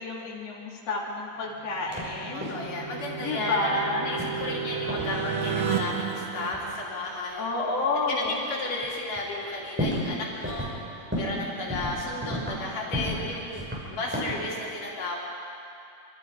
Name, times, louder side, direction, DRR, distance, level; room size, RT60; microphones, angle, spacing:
voice 1, 0.0-2.5 3.2-4.1 7.4-8.4, left 2 dB, 50° left, -5 dB, 4.3 m, -30 dB
sound 1, 1.6-7.5, right 7 dB, 50° right, 1.8 m, -33 dB
sound 2, 1.9-2.1 2.4-2.7 4.2-4.6 4.9-5.1 6.5-6.6 7.5-7.6 8.3-8.4 8.8-8.9 9.2-10.1 10.4-10.8 11.1-11.4 11.7-12.6 12.9-13.3 13.5-14.5, equal, 5° right, 5.8 m, -32 dB
voice 2, 2.3-7.5 7.9-13.6 13.9-15.2, left 2 dB, 75° left, -4 dB, 4.4 m, -33 dB
26.0 x 25.0 x 5.1 m, 2.6 s
omnidirectional pair, 3.8 m